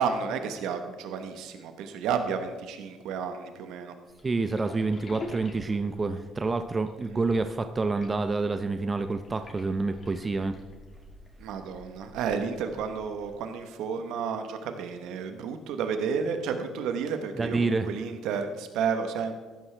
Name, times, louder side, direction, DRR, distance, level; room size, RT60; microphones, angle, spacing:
voice 1, 0.0-3.9 11.4-19.3, right 6 dB, 80° right, 7 dB, 1.0 m, -31 dB
sound 1, 4.1-13.4, left 2 dB, 35° left, 2.6 m, -48 dB
voice 2, 4.2-10.6 17.4-17.9, right 3 dB, 25° right, 9 dB, 0.6 m, -28 dB
14.5 x 11.5 x 3.3 m, 1.4 s
cardioid pair, 95°, 0 cm